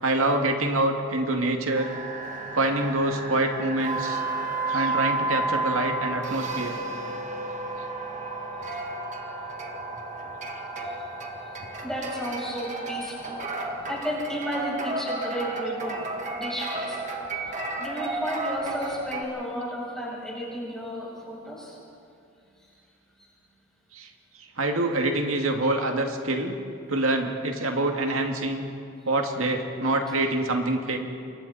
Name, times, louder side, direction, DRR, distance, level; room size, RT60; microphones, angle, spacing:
voice 1, 0.0-1.9 2.5-4.2 4.7-6.8 23.9-24.1 24.4-26.5 26.9-28.7 29.0-31.0, right 2 dB, 85° right, 3 dB, 2.1 m, -26 dB
sound 1, 1.7-19.2, right 2 dB, 35° right, 2.0 m, -32 dB
voice 2, 11.8-13.3 13.9-16.1 16.3-17.0 17.4-21.8, equal, 5° left, -6 dB, 6.6 m, -33 dB
28.5 x 23.5 x 4.2 m, 2.4 s
head